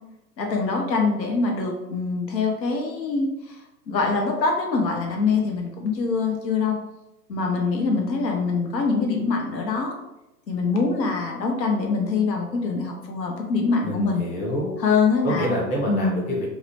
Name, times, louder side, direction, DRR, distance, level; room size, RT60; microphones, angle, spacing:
voice 1, 0.4-3.6 3.9-6.8 7.3-9.9 10.5-14.2 14.8-15.5 15.9-16.2, left 4 dB, 85° left, 1 dB, 0.8 m, -24 dB
voice 2, 13.8-14.8 15.2-16.5, equal, 15° left, -5 dB, 0.5 m, -27 dB
2.7 x 2.1 x 2.8 m, 0.92 s
hypercardioid pair, 120°, 49 cm